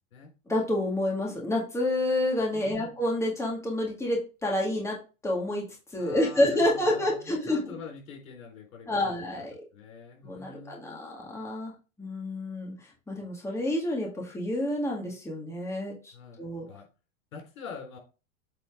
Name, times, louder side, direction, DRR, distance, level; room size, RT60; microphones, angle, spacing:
voice 1, 0.5-5.0 5.2-7.6 8.9-9.6 10.2-11.7 12.0-16.1 16.4-16.7, left 1 dB, 5° left, -2 dB, 1.9 m, -29 dB
voice 2, 2.5-3.0 6.0-9.4 9.7-11.0 16.1-16.9 17.3-18.0, left 5 dB, 75° left, 1 dB, 4.1 m, -45 dB
8.4 x 4.3 x 3.6 m, 0.32 s
hypercardioid pair, 110°, 41 cm